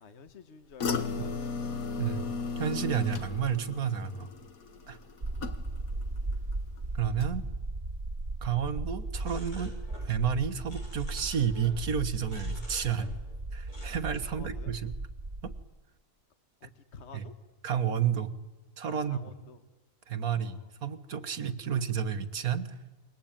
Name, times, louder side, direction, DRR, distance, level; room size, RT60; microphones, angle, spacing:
voice 1, 0.0-1.8 14.3-14.7 16.6-17.3 18.9-19.6 20.3-20.7, left 5 dB, 50° left, 10 dB, 1.5 m, -51 dB
sound 1, 0.8-6.0 6.3-6.8 7.2-7.3, left 4 dB, 70° left, 1.9 m, -35 dB
voice 2, 2.6-4.3 4.9-5.0 6.9-7.4 8.4-9.7 10.1-13.2 13.5-14.9 15.4-15.5 17.1-17.3 17.6-18.3 18.8-19.2 20.1-22.7, right 8 dB, 75° right, 9 dB, 1.8 m, -31 dB
sound 2, 5.2-15.6, right 2 dB, 35° right, 1.8 m, -37 dB
sound 3, 9.2-10.1 10.4-11.8 12.2-13.4 13.7-13.9, left 1 dB, 85° left, 7.9 m, -51 dB
28.0 x 23.0 x 9.0 m, 1.1 s
omnidirectional pair, 1.5 m